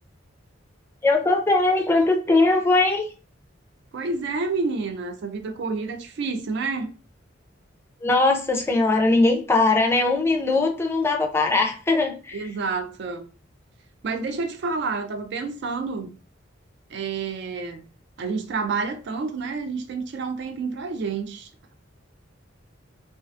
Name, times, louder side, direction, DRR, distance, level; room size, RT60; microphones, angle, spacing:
voice 1, 1.0-3.1 8.0-12.4, left 3 dB, 15° left, 0.3 m, -20 dB
voice 2, 3.9-6.9 12.3-13.3 14.0-16.2 16.9-17.8 18.2-21.5, right 4 dB, 65° right, 0.4 m, -29 dB
2.3 x 2.2 x 2.4 m
head